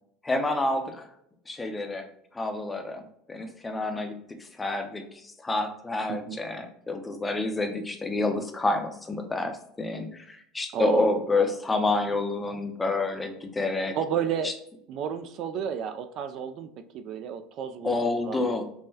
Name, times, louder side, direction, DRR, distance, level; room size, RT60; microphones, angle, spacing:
voice 1, 0.2-1.1 1.5-2.1 2.3-4.1 4.4-14.0 14.4-14.5 17.8-18.6, left 2 dB, 15° left, 5 dB, 0.5 m, -28 dB
voice 2, 6.1-6.4 10.7-11.1 13.9-14.5 14.9-18.0 18.3-18.5, right 8 dB, 50° right, 9 dB, 0.3 m, -31 dB
5.5 x 2.1 x 2.7 m, 0.71 s
cardioid pair, 140°, 0 cm